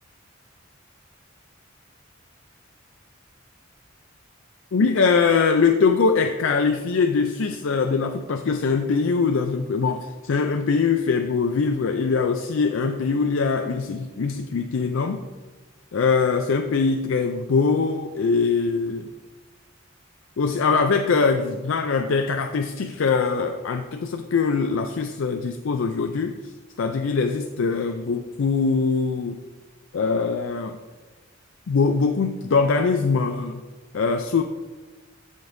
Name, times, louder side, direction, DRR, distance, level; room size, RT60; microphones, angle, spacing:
voice 1, 4.7-15.2 15.9-19.1 20.4-26.5 26.8-29.4 29.9-30.8 31.7-33.6 33.9-34.4, left 4 dB, 75° left, 6 dB, 0.4 m, -22 dB
13.5 x 5.2 x 2.6 m, 1.3 s
head